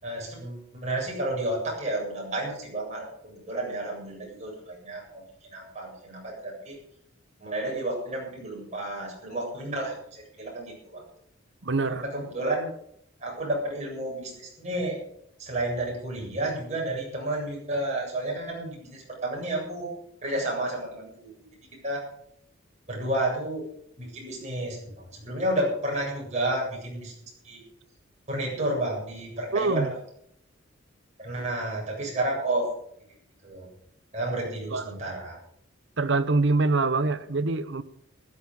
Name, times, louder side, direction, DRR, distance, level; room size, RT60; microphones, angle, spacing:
voice 1, 0.0-6.8 7.4-11.0 11.9-12.7 13.2-15.0 15.4-19.9 20.2-21.4 21.8-22.0 22.9-23.7 24.0-27.1 27.4-27.6 28.3-29.9 31.2-32.7 33.4-33.7 34.1-35.4, right 1 dB, 35° right, -2 dB, 7.9 m, -31 dB
voice 2, 11.6-12.0 29.5-29.9 34.7-35.0 36.0-37.8, right 3 dB, 60° right, 13 dB, 0.9 m, -24 dB
15.5 x 13.0 x 5.5 m, 0.69 s
head